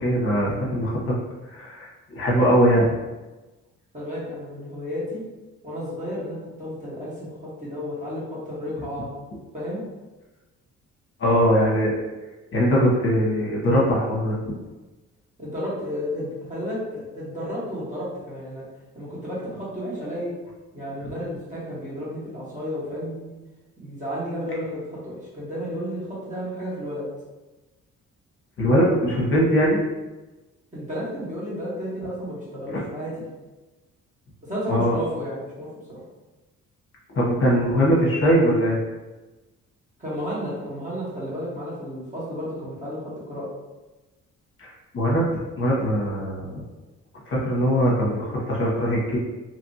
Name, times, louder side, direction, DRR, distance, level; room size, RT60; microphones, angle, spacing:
voice 1, 0.0-1.1 1.5-2.9 11.2-11.9 12.5-14.5 28.6-29.8 32.7-32.8 34.7-35.0 37.1-38.8 44.6-45.3 45.6-46.6 47.3-49.2, equal, 45° left, -5 dB, 0.9 m, -21 dB
voice 2, 3.9-5.2 5.6-9.1 9.5-9.8 15.4-18.6 18.9-20.3 20.7-23.3 23.8-27.0 30.7-33.2 34.4-36.0 40.0-43.0 43.3-43.5, equal, 25° right, -8 dB, 1.4 m, -32 dB
2.9 x 2.5 x 2.7 m, 1.1 s
cardioid pair, 90°, 30 cm